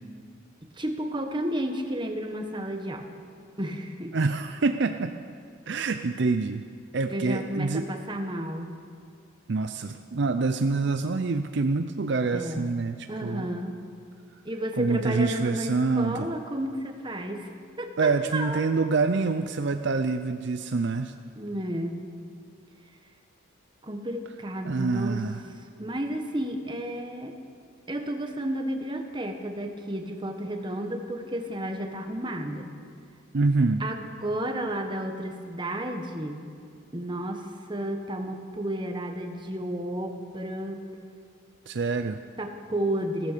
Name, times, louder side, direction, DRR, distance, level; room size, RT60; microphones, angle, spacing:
voice 1, 0.7-3.1 3.6-4.2 7.1-8.7 12.3-12.7 13.1-13.8 14.4-18.7 21.4-22.0 23.8-25.2 25.6-27.4 27.9-32.7 33.8-36.5 36.9-40.8 42.4-43.3, right 1 dB, 20° right, 5 dB, 1.2 m, -32 dB
voice 2, 4.1-5.1 5.7-6.6 6.9-7.8 9.5-13.5 14.8-16.3 18.0-21.1 24.6-25.4 33.3-33.8 41.7-42.2, right 3 dB, 55° right, 8 dB, 0.5 m, -26 dB
15.5 x 14.0 x 6.7 m, 2.3 s
head